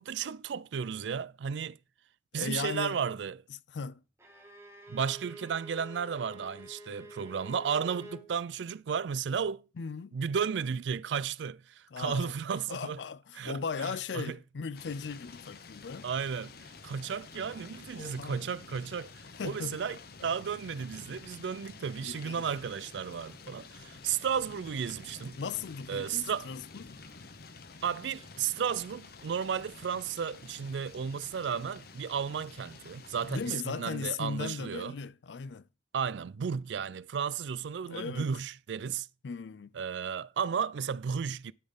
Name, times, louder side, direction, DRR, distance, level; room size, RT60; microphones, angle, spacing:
voice 1, 0.0-1.8 2.3-3.4 4.9-9.6 10.1-13.0 13.4-14.4 16.0-16.5 16.8-20.0 20.2-25.4 25.9-26.5 27.8-34.9 35.9-39.1 39.7-41.5, right 7 dB, 90° right, 0.4 m, -34 dB
voice 2, 2.3-3.0 3.5-4.0 9.8-10.2 11.9-12.3 12.7-16.1 18.0-18.4 19.4-20.0 22.0-22.4 25.4-27.0 33.3-35.7 37.9-38.3 39.2-39.7, left 5 dB, 80° left, 0.5 m, -38 dB
Bowed string instrument, 4.2-8.3, equal, 15° right, 1.6 m, -49 dB
sound 1, 14.7-33.5, left 4 dB, 60° left, 0.9 m, -50 dB
12.0 x 4.1 x 5.3 m
head